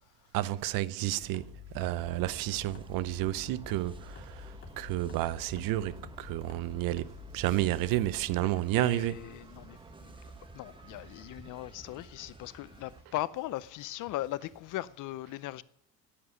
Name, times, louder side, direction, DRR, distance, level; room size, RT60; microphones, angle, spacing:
voice 1, 0.3-9.3, right 15 dB, 65° right, 0.7 m, -31 dB
sound 1, 0.6-14.9, right 2 dB, 35° right, 5.0 m, -62 dB
sound 2, 1.2-8.2, left 6 dB, 30° left, 3.1 m, -48 dB
sound 3, 1.9-13.0, right 3 dB, 15° right, 0.8 m, -51 dB
voice 2, 8.4-9.8 10.0-10.1 10.5-15.6, left 16 dB, 60° left, 0.7 m, -39 dB
11.0 x 8.6 x 5.6 m
supercardioid pair, 105°, 36 cm